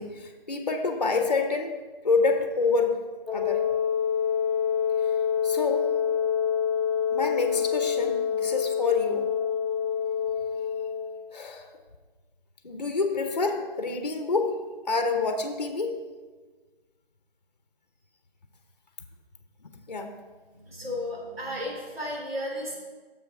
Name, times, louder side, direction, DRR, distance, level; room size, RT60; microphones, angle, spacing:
voice 1, 0.0-1.7 2.0-3.0 3.3-3.6 5.4-5.9 7.1-9.3 11.3-11.7 12.6-14.6 14.9-16.0 19.6-20.1, left 4 dB, 45° left, 6 dB, 0.7 m, -27 dB
Wind instrument woodwind instrument, 3.3-11.1, left 7 dB, 30° right, 1.1 m, -26 dB
voice 2, 20.7-22.7, left 1 dB, 80° right, -2 dB, 2.7 m, -33 dB
7.0 x 6.6 x 4.7 m, 1.4 s
figure-of-eight pair, 170°, 29 cm